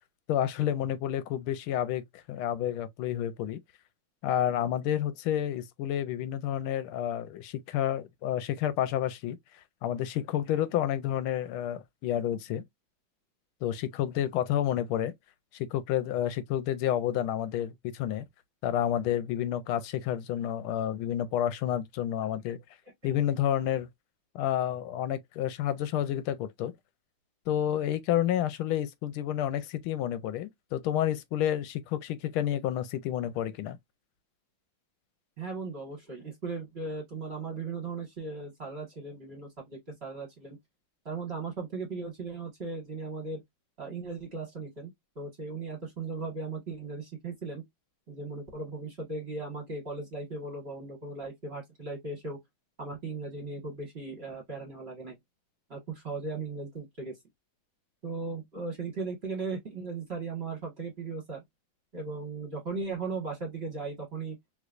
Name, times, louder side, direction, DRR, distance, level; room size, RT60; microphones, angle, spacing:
voice 1, 0.3-3.6 4.2-9.4 9.8-12.6 13.6-15.1 15.5-18.2 18.6-22.6 23.0-23.9 24.3-26.7 27.5-33.8, left 11 dB, 85° left, 1.4 m, -30 dB
voice 2, 35.4-40.6 41.0-43.4 43.8-47.6 48.1-52.4 52.8-55.2 55.7-57.2 58.0-61.4 61.9-64.4, right 4 dB, 30° right, 1.6 m, -37 dB
3.3 x 3.1 x 2.4 m
omnidirectional pair, 2.3 m